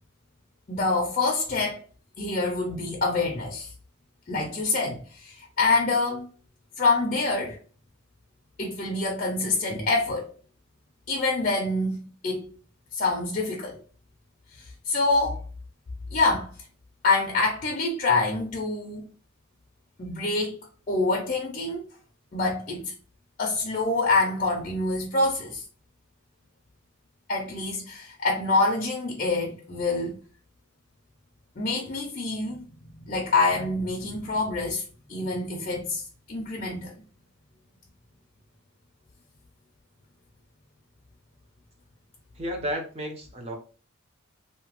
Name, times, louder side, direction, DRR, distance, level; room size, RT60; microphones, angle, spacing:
voice 1, 0.7-1.8 2.2-3.7 4.3-6.3 6.8-7.6 8.6-10.3 11.1-12.5 12.9-13.8 14.6-15.4 16.1-16.5 17.0-19.1 20.0-20.6 20.9-21.9 22.3-22.9 23.4-25.6 27.3-30.2 31.6-32.6 32.9-34.8 35.1-36.9, left 3 dB, 35° left, 0.4 m, -26 dB
voice 2, 42.4-43.6, equal, 25° right, 0.5 m, -32 dB
2.8 x 2.2 x 2.9 m
head